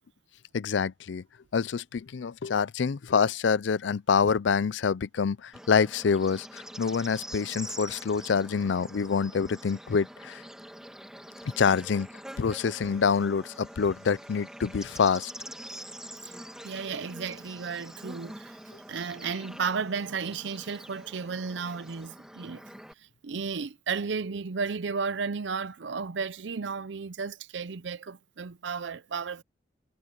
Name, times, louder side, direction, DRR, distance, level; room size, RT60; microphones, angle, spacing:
voice 1, 0.5-1.2 1.5-10.4 11.6-12.1 12.4-15.3, left 6 dB, 80° left, 0.4 m, -26 dB
Bird / Insect, 5.5-22.9, equal, 5° right, 1.7 m, -45 dB
sound 1, 12.8-22.2, right 7 dB, 40° right, 5.5 m, -66 dB
voice 2, 16.6-18.6 18.9-22.6 23.2-29.4, right 5 dB, 80° right, 0.6 m, -33 dB
head